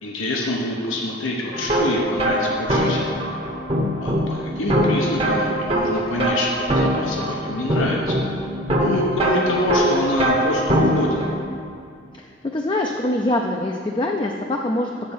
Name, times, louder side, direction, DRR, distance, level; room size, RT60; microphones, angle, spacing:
voice 1, 0.0-3.2 4.0-8.1 8.8-11.2, left 1 dB, 90° left, -1 dB, 0.9 m, -26 dB
sound 1, 1.5-11.4, equal, 30° right, 0.8 m, -22 dB
voice 2, 12.1-15.1, left 1 dB, 25° left, 1 dB, 0.4 m, -24 dB
8.6 x 4.3 x 7.1 m, 2.4 s
head